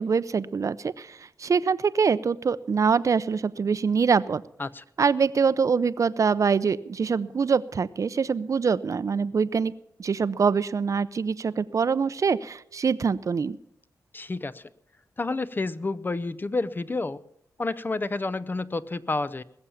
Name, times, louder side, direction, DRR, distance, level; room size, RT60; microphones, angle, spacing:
voice 1, 0.0-4.4 5.0-9.7 10.0-13.6, right 5 dB, 55° right, 15 dB, 0.6 m, -24 dB
voice 2, 14.1-14.6 15.2-17.2 17.6-19.4, left 3 dB, 30° left, 15 dB, 0.7 m, -29 dB
21.0 x 7.2 x 7.1 m, 0.73 s
cardioid pair, 70°, 7 cm